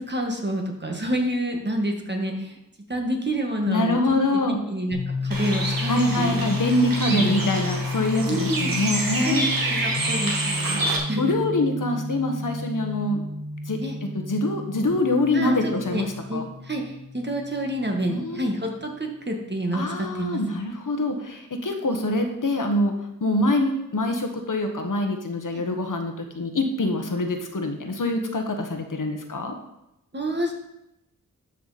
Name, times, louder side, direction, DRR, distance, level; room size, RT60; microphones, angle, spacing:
voice 1, 0.1-2.6 2.9-4.0 4.3-6.4 7.1-7.6 8.3-8.7 9.2-10.8 11.1-11.2 13.8-14.0 15.3-16.0 16.3-20.4 25.5-25.6 30.1-30.5, right 1 dB, 30° right, 2 dB, 1.7 m, -28 dB
voice 2, 3.7-4.6 5.9-9.4 11.2-13.2 13.7-13.8 14.1-16.5 18.1-18.5 19.7-22.9 23.2-29.5, left 2 dB, 65° left, 4 dB, 1.4 m, -25 dB
sound 1, 4.9-18.5, left 3 dB, 80° left, 2.1 m, -32 dB
Bird, 5.3-11.0, right 2 dB, 80° right, 1.8 m, -28 dB
12.0 x 6.1 x 4.2 m, 0.86 s
wide cardioid pair, 80°, 33 cm